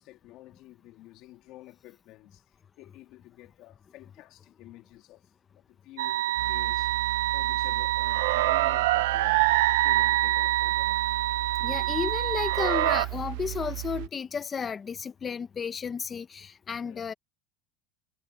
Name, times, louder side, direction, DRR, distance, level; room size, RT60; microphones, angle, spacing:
voice 1, 0.0-2.4 2.8-5.3 5.6-7.0 7.3-9.5 9.8-11.1 16.8-17.0, left 17 dB, 45° left, 3.4 m, -50 dB
sound 1, 6.0-13.1, right 16 dB, 80° right, 0.9 m, -25 dB
sound 2, 6.4-14.1, right 26 dB, 55° right, 0.4 m, -37 dB
voice 2, 11.6-17.1, left 6 dB, 20° left, 0.9 m, -33 dB
supercardioid pair, 165°, 0 cm